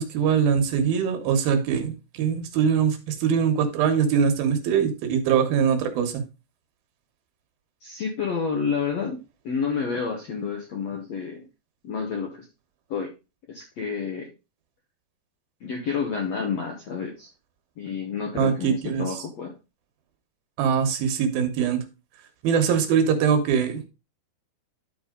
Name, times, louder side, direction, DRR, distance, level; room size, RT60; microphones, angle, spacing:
voice 1, 0.0-6.2 18.3-19.1 20.6-21.8 22.4-23.8, right 7 dB, 70° right, 7 dB, 2.8 m, -22 dB
voice 2, 7.8-11.4 11.8-12.5 12.9-13.1 13.5-14.3 15.6-17.3 17.8-19.5, left 6 dB, 80° left, 1 dB, 1.5 m, -29 dB
12.5 x 4.2 x 3.8 m, 0.29 s
omnidirectional pair, 4.9 m